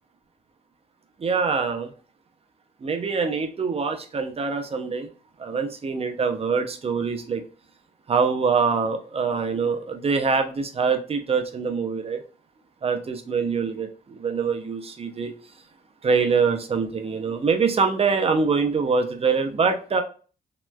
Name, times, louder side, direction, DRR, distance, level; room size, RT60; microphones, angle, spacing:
voice 1, 1.2-1.9 2.8-5.1 5.4-7.4 8.1-12.2 12.8-15.3 16.0-20.0, right 5 dB, 35° right, 5 dB, 0.6 m, -24 dB
3.0 x 3.0 x 2.2 m, 0.38 s
cardioid pair, 90°, 16 cm